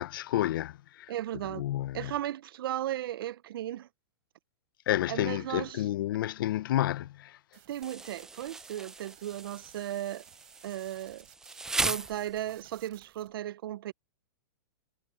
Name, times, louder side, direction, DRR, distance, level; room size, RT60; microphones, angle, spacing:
voice 1, 0.0-1.1 1.5-2.1 4.9-7.4, left 13 dB, 60° left, 0.7 m, -30 dB
voice 2, 1.1-1.6 1.9-3.9 5.1-5.9 7.7-10.2 10.6-11.3 11.7-13.9, right 12 dB, 65° right, 0.5 m, -36 dB
sound 1, 7.5-11.8 12.1-13.3, right 28 dB, 40° right, 4.6 m, -58 dB
Insect, 7.8-12.8, right 3 dB, 5° right, 0.4 m, -37 dB
hypercardioid pair, 155°, 13 cm